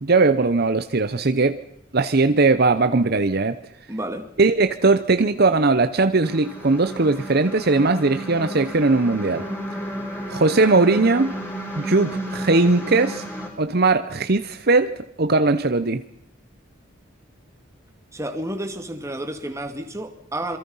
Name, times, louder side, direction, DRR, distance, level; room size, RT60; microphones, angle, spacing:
voice 1, 0.0-1.6 1.9-3.6 4.4-9.5 10.3-11.3 11.7-13.2 13.6-16.0, right 3 dB, 50° right, 10 dB, 0.9 m, -19 dB
voice 2, 3.9-4.3 18.1-20.6, right 1 dB, 15° right, 6 dB, 2.4 m, -30 dB
sound 1, 6.2-13.5, right 1 dB, 10° left, 5.7 m, -32 dB
27.5 x 23.0 x 5.6 m, 0.71 s
head